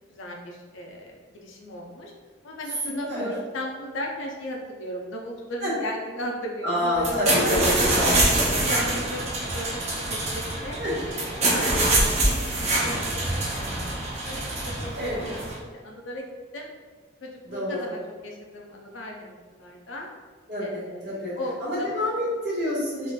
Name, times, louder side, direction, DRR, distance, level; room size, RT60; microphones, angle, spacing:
voice 1, 0.1-2.1 2.4-7.9 8.4-10.8 11.1-12.5 12.8-13.0 13.3-13.6 14.2-16.7 17.2-20.1 20.6-22.1, left 1 dB, 65° left, 0 dB, 0.5 m, -36 dB
voice 2, 2.8-3.3 5.6-5.7 6.6-8.1 10.8-11.0 15.0-15.3 17.4-17.9 20.5-23.1, left 1 dB, 55° right, -8 dB, 1.4 m, -28 dB
sound 1, 6.9-15.6, right 2 dB, 35° right, 0.5 m, -25 dB
3.7 x 2.5 x 2.3 m, 1.5 s
head